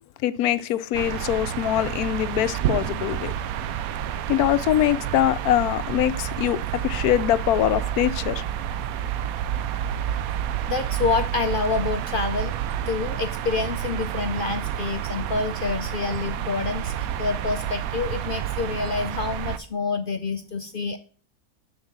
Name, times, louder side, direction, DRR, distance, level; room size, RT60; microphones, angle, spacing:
voice 1, 0.2-3.3 4.3-8.4, left 12 dB, 85° left, 1.1 m, -23 dB
sound 1, 0.9-19.6, right 10 dB, 75° right, 1.0 m, -29 dB
voice 2, 10.7-12.5 12.9-21.0, left 4 dB, 60° left, 0.5 m, -27 dB
10.5 x 3.9 x 7.1 m
omnidirectional pair, 1.6 m